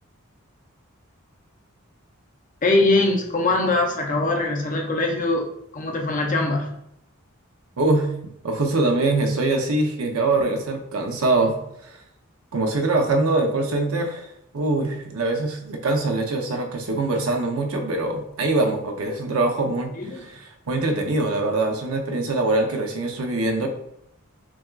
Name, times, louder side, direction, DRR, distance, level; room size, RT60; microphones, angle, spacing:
voice 1, 2.6-6.7 20.0-20.2, left 2 dB, 40° left, 2 dB, 0.6 m, -22 dB
voice 2, 7.8-8.1 8.4-12.0 12.5-23.7, right 2 dB, 85° right, 4 dB, 0.7 m, -23 dB
5.9 x 2.3 x 2.4 m, 0.77 s
head